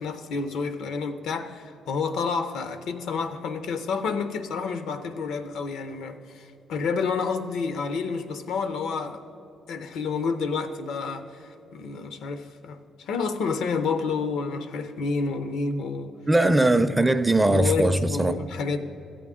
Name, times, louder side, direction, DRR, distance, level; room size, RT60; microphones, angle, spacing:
voice 1, 0.0-9.2 9.7-16.1 17.0-17.1 17.5-18.8, left 4 dB, 80° left, 9 dB, 0.5 m, -29 dB
voice 2, 16.3-18.4, right 1 dB, 15° right, 11 dB, 0.4 m, -20 dB
14.0 x 8.5 x 3.6 m, 2.7 s
cardioid pair, 90°, 0 cm